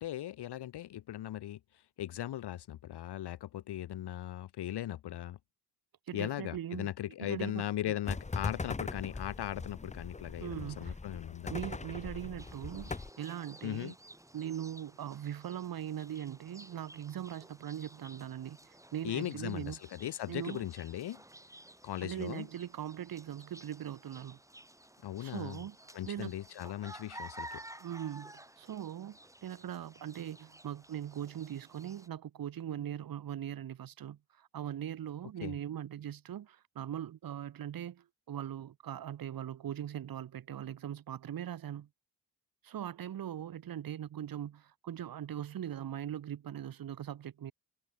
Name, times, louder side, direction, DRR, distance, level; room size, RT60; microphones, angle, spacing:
voice 1, 0.0-5.4 6.1-11.5 13.6-13.9 19.0-21.2 21.8-22.5 25.0-25.6 25.9-27.6 35.4-35.5, left 13 dB, 70° left, 0.8 m, -38 dB
voice 2, 6.1-6.9 7.2-7.9 10.4-11.0 11.5-14.0 14.3-19.8 20.3-20.7 22.0-24.4 25.2-26.4 27.8-41.9 42.6-47.5, right 10 dB, 55° right, 0.9 m, -40 dB
sound 1, 8.1-13.1, left 3 dB, 15° left, 0.9 m, -40 dB
sound 2, 12.4-32.1, right 1 dB, 5° right, 7.7 m, -53 dB
wide cardioid pair, 130°, 42 cm